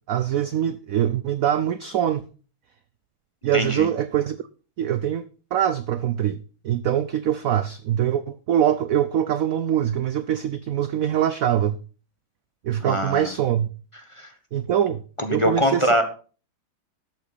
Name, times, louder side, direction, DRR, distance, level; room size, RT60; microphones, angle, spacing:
voice 1, 0.1-2.2 3.4-4.4 4.8-5.3 5.5-6.4 6.6-11.8 12.6-13.7 14.5-15.0 15.3-15.9, right 10 dB, 80° right, 0.7 m, -23 dB
voice 2, 3.5-3.9 12.8-13.3 14.2-14.3 15.2-16.0, equal, 20° left, 1.1 m, -23 dB
12.5 x 8.6 x 4.1 m
omnidirectional pair, 2.2 m